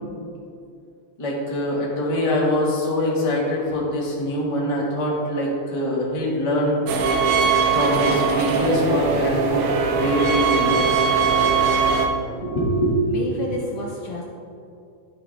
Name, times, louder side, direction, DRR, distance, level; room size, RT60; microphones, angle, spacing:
voice 1, 1.2-6.8 7.7-11.0 11.4-11.5 12.2-12.9, left 1 dB, 40° left, -4 dB, 0.4 m, -23 dB
sound 1, 6.9-12.1, right 5 dB, 90° right, 2.1 m, -20 dB
voice 2, 13.1-14.2, left 2 dB, 75° left, -1 dB, 1.4 m, -30 dB
11.5 x 4.9 x 3.3 m, 2.5 s
omnidirectional pair, 3.3 m